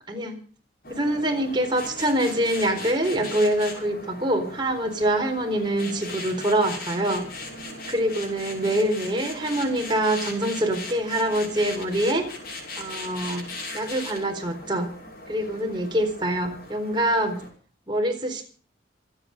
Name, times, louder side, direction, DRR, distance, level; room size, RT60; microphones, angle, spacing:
sound 1, 0.8-17.5, left 2 dB, 55° left, 6.4 m, -38 dB
voice 1, 0.9-7.2 7.9-12.2 12.8-13.4 13.7-14.9 15.3-17.4 17.9-18.4, right 1 dB, 25° right, 2 dB, 4.2 m, -25 dB
27.0 x 9.3 x 5.3 m, 0.40 s
head